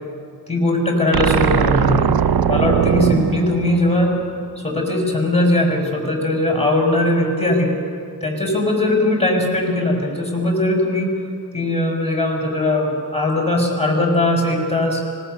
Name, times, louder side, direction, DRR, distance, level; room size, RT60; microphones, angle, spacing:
voice 1, 0.5-2.1 2.5-4.1 4.6-7.8 8.2-11.1 11.5-15.0, left 1 dB, 15° left, 1 dB, 6.2 m, -19 dB
sound 1, 1.1-4.5, right 8 dB, 80° right, 0.7 m, -19 dB
25.0 x 20.0 x 6.9 m, 2.4 s
wide cardioid pair, 65°, 36 cm